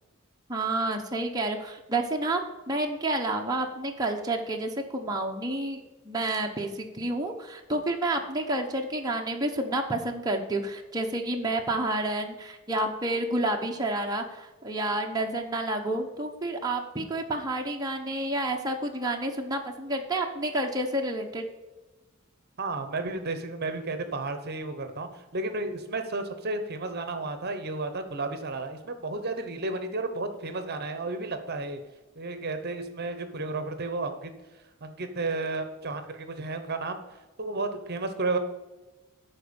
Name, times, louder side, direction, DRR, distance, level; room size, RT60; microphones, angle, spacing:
voice 1, 0.5-2.4 2.7-21.5, right 2 dB, 20° right, 1 dB, 0.9 m, -29 dB
voice 2, 22.6-31.8 32.1-34.3 34.8-37.0 37.4-38.4, right 3 dB, 50° right, 8 dB, 0.9 m, -32 dB
11.5 x 4.4 x 7.0 m, 1.1 s
head